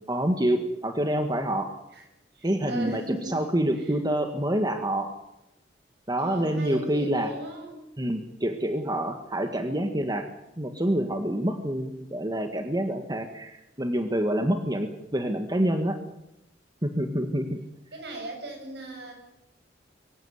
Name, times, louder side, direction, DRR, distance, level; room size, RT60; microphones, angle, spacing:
voice 1, 0.1-1.7 2.4-5.1 6.1-7.3 8.0-10.3 10.6-16.0 16.8-17.6, right 1 dB, 25° right, 6 dB, 1.7 m, -27 dB
voice 2, 2.3-3.4 3.8-3.9 6.1-7.9 17.9-19.1, right 1 dB, 70° right, 3 dB, 7.5 m, -37 dB
23.5 x 16.5 x 9.7 m, 0.90 s
head